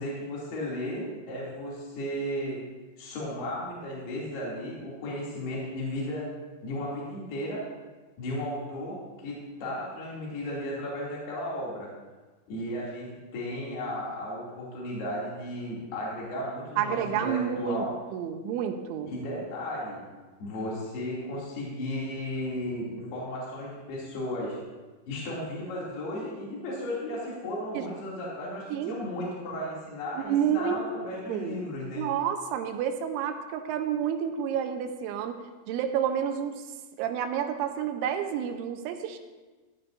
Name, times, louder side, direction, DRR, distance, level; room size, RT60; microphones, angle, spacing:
voice 1, 0.0-2.6 3.0-6.3 6.6-7.7 8.2-11.9 12.5-17.9 19.1-20.0 20.4-24.6 25.1-32.1, left 1 dB, 60° left, -6 dB, 4.4 m, -34 dB
voice 2, 16.8-17.8 18.1-19.1 27.7-27.9 28.7-29.0 30.2-30.9 31.3-31.6 32.0-35.4 35.7-36.6 37.0-39.2, right 9 dB, 80° right, 6 dB, 3.1 m, -29 dB
16.5 x 12.5 x 2.6 m, 1.3 s
omnidirectional pair, 5.5 m